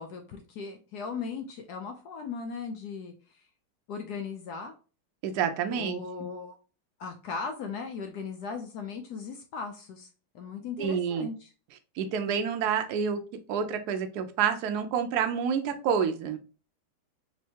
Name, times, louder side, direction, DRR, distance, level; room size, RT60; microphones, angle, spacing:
voice 1, 0.0-3.4 3.9-4.7 5.7-6.5 7.0-10.1 10.3-11.5, left 5 dB, 75° left, 5 dB, 0.9 m, -38 dB
voice 2, 5.2-6.0 10.8-11.3 12.0-13.2 13.5-16.4, right 7 dB, 70° right, 7 dB, 0.9 m, -28 dB
4.5 x 3.3 x 2.8 m, 0.35 s
omnidirectional pair, 2.3 m